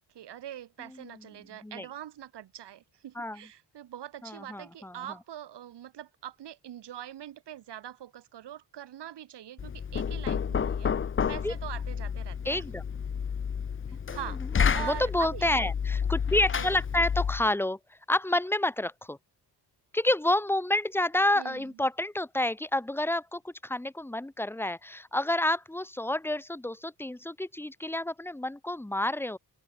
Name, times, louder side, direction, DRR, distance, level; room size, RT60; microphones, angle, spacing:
voice 1, 0.1-10.9 11.3-12.6 13.9-14.4 14.7-15.7 16.5-16.7 21.4-21.7, right 11 dB, 80° right, 6.9 m, -43 dB
voice 2, 0.8-1.3 1.6-1.9 3.1-3.4 4.2-5.0 11.2-11.5 12.4-12.8 14.1-17.8 18.1-19.2 19.9-29.4, left 1 dB, 5° left, 1.5 m, -29 dB
Knock, 9.6-17.5, left 7 dB, 30° left, 0.8 m, -30 dB
open air
cardioid pair, 140°, 41 cm